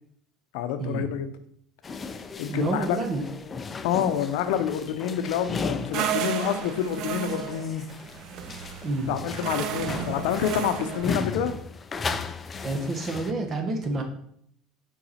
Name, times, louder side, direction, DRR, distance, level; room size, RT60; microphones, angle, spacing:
voice 1, 0.5-1.3 2.4-3.0 3.8-7.9 9.1-11.5, left 9 dB, 80° left, 9 dB, 0.6 m, -28 dB
sound 1, 1.8-13.3, left 4 dB, 25° left, 0.4 m, -36 dB
voice 2, 2.5-3.3 8.8-9.1 12.6-14.0, right 2 dB, 35° right, 5 dB, 1.1 m, -28 dB
sound 2, 5.9-11.1, right 8 dB, 60° right, 0.5 m, -33 dB
5.7 x 4.7 x 4.2 m, 0.68 s
supercardioid pair, 115°, 0 cm